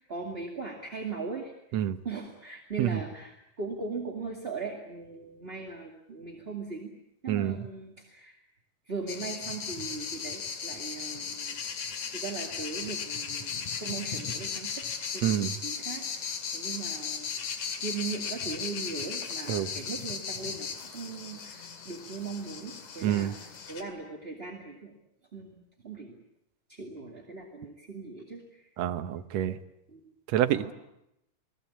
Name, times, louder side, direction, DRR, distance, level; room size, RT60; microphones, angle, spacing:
voice 1, 0.0-1.5 2.0-6.9 7.2-8.4 8.9-14.8 15.1-17.5 17.8-23.4 23.7-25.0 25.3-26.2 26.7-28.7 29.9-30.0 30.5-30.7, right 4 dB, 20° right, 1 dB, 1.9 m, -39 dB
voice 2, 7.3-7.6 15.2-15.6 19.5-19.7 23.0-23.3 28.8-29.6 30.3-30.7, right 11 dB, 65° right, 9 dB, 2.0 m, -27 dB
sound 1, 9.1-23.8, left 6 dB, 65° left, 3.7 m, -36 dB
28.5 x 19.5 x 8.6 m, 0.83 s
omnidirectional pair, 3.8 m